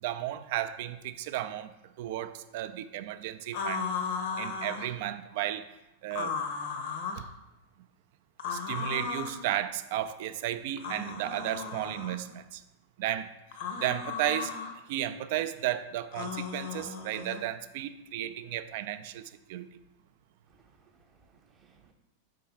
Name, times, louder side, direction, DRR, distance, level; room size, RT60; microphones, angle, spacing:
voice 1, 0.0-1.7 2.0-3.9 4.4-5.6 6.0-6.4 7.1-7.2 8.5-12.6 13.0-13.3 13.8-14.5 14.9-19.6, right 12 dB, 50° right, 12 dB, 0.4 m, -34 dB
sound 1, 3.5-4.9 6.1-7.3 8.4-9.4 10.8-12.2 13.5-14.7 16.1-17.4, left 5 dB, 50° left, 0.7 m, -35 dB
voice 2, 20.5-21.9, right 3 dB, 15° right, 1 dB, 0.9 m, -65 dB
5.4 x 3.8 x 5.7 m, 0.94 s
figure-of-eight pair, 90°, 0 cm